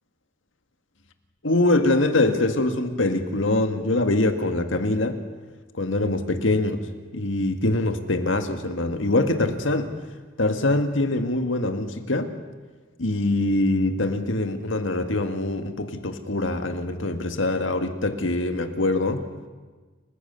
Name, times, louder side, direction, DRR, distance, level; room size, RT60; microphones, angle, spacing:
voice 1, 1.4-5.2 5.7-6.9 7.1-9.9 10.4-12.3 13.0-19.2, left 2 dB, 80° left, 7 dB, 1.8 m, -23 dB
30.0 x 15.0 x 6.9 m, 1.4 s
head